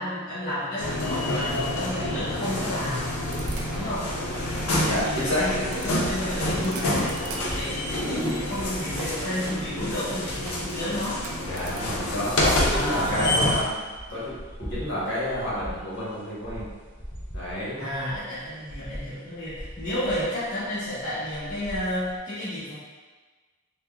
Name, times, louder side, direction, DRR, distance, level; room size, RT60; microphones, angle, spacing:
voice 1, 0.0-3.2 3.7-4.1 4.6-7.2 7.5-11.2 12.7-13.6 17.8-22.7, left 1 dB, 40° left, -13 dB, 0.8 m, -31 dB
sound 1, 0.8-13.6, left 1 dB, 85° left, 0.5 m, -28 dB
sound 2, 3.3-11.8, right 2 dB, 75° right, 0.4 m, -42 dB
voice 2, 4.8-5.4 11.4-13.8 14.1-16.7 17.3-17.8, left 1 dB, 55° left, -9 dB, 1.0 m, -29 dB
sound 3, 5.3-22.2, equal, 10° left, 0.4 m, -42 dB
3.4 x 2.1 x 2.3 m, 1.4 s
head